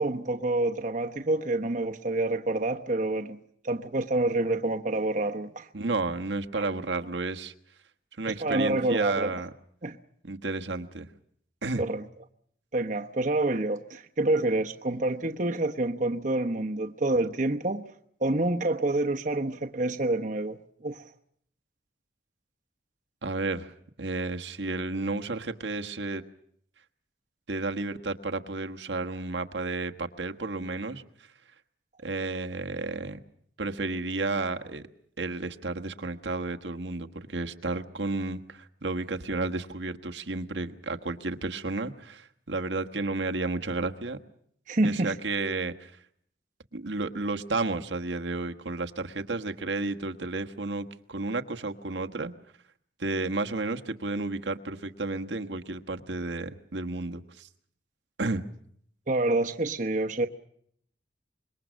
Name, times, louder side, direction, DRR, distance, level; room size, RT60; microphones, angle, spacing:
voice 1, 0.0-3.4 3.6-5.7 6.5-6.7 8.3-9.3 9.8-10.0 11.8-12.0 12.7-17.9 18.2-21.0 44.7-45.2 59.1-60.3, right 2 dB, 45° right, 1.0 m, -27 dB
voice 2, 5.7-7.5 8.2-9.5 10.2-11.1 11.6-11.8 23.2-23.7 24.0-26.2 27.5-31.0 32.0-33.2 33.6-34.9 35.2-44.2 44.8-45.9 46.7-52.3 53.0-57.5 58.2-58.4, right 3 dB, 80° right, 1.4 m, -32 dB
26.0 x 22.5 x 6.3 m
head